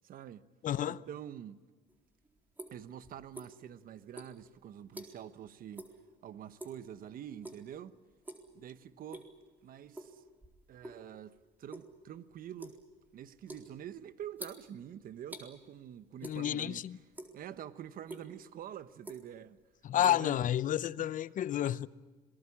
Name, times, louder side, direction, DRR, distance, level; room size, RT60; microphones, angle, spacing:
voice 1, 0.0-0.5 0.8-1.6 2.7-5.9 6.2-8.0 8.5-9.3 9.6-10.2 10.7-12.8 13.1-16.8 17.3-19.6 19.9-20.4 21.0-21.1 21.5-21.6, right 10 dB, 55° right, 1.1 m, -46 dB
voice 2, 0.6-1.0 16.2-17.0 19.8-21.9, left 11 dB, 50° left, 0.7 m, -30 dB
sound 1, 1.9-3.8 4.1-5.4 5.7-6.0 6.3-6.9 7.4-7.8 8.1-8.5 8.9-9.5 9.9-11.1 11.4-15.5 16.2-16.8 17.0-17.6 18.1-18.2 18.8-19.5 19.8-20.9, right 1 dB, 10° right, 4.0 m, -48 dB
27.0 x 19.5 x 8.6 m
cardioid pair, 110°, 17 cm